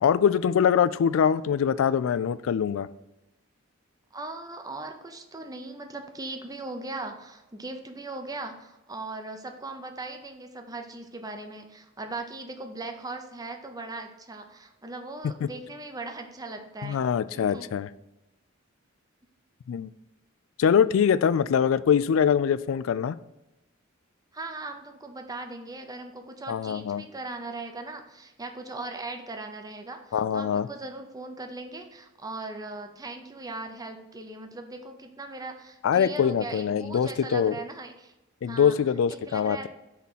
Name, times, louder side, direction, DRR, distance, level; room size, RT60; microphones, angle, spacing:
voice 1, 0.0-2.9 16.8-17.9 19.7-19.9 20.6-23.2 26.5-27.0 30.1-30.7 35.8-37.5 38.4-39.7, left 7 dB, 70° left, 16 dB, 0.3 m, -23 dB
voice 2, 4.1-17.0 17.3-17.7 24.3-38.1 38.4-38.8 39.1-39.7, right 2 dB, 20° right, 5 dB, 0.6 m, -39 dB
5.8 x 3.7 x 5.6 m, 0.97 s
head